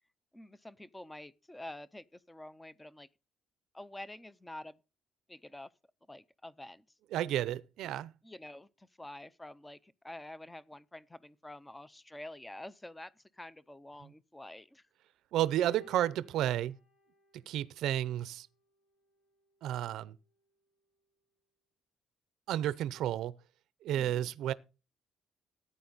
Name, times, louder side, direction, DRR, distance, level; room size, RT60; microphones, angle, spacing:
voice 1, 0.3-3.1 3.7-4.8 5.3-5.7 6.1-6.8 7.8-14.9 23.9-24.3, left 1 dB, 5° left, 0.5 m, -48 dB
voice 2, 7.1-8.1 15.3-16.8 17.5-18.5 19.6-20.1 22.5-23.3 23.8-24.5, right 12 dB, 65° right, 0.6 m, -32 dB
sound 1, 15.7-18.2 19.2-19.3, equal, 85° left, 4.2 m, -57 dB
14.0 x 9.5 x 4.0 m
cardioid pair, 180°, 0 cm